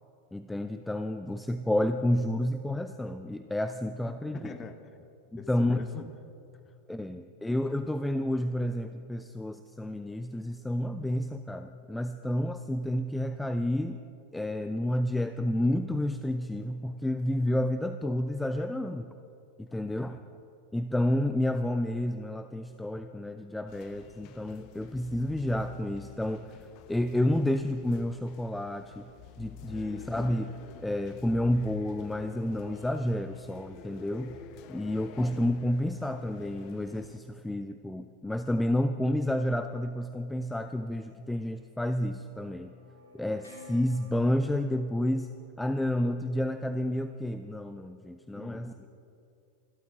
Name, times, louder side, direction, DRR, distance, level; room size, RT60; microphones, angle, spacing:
voice 1, 0.3-4.5 5.5-5.8 6.9-14.0 14.3-19.1 19.6-20.2 20.7-26.5 26.9-29.1 29.4-30.5 30.8-34.3 34.7-42.7 43.1-45.3 45.6-48.7, left 1 dB, 5° left, 10 dB, 0.5 m, -30 dB
voice 2, 4.1-5.1 5.4-6.1 6.7-7.2 19.7-20.2 29.8-30.1 48.3-48.9, left 4 dB, 20° left, 9 dB, 1.1 m, -45 dB
sound 1, 23.7-37.2, left 8 dB, 40° left, 0.8 m, -50 dB
sound 2, 41.3-46.9, equal, 75° left, 3.3 m, -56 dB
25.0 x 12.5 x 3.6 m, 2.7 s
figure-of-eight pair, 90°, 0 cm